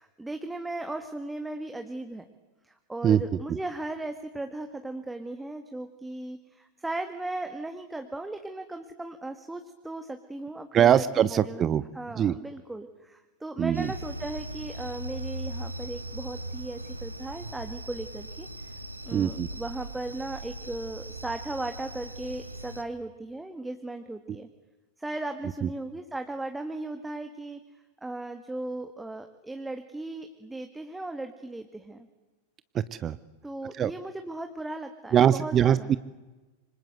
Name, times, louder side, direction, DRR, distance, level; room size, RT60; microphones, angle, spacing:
voice 1, 0.0-2.2 2.6-11.7 11.9-18.7 19.0-24.5 25.0-27.6 28.0-32.1 33.4-35.9, right 2 dB, 5° right, 7 dB, 1.8 m, -37 dB
voice 2, 10.7-11.8 12.2-12.3 13.6-13.9 19.1-19.5 25.6-25.7 32.7-33.2 33.8-33.9 35.1-36.0, right 9 dB, 25° right, 16 dB, 0.8 m, -22 dB
sound 1, 13.7-22.8, right 1 dB, 85° right, 1.8 m, -39 dB
27.0 x 26.0 x 8.1 m, 1.2 s
figure-of-eight pair, 90°, 0 cm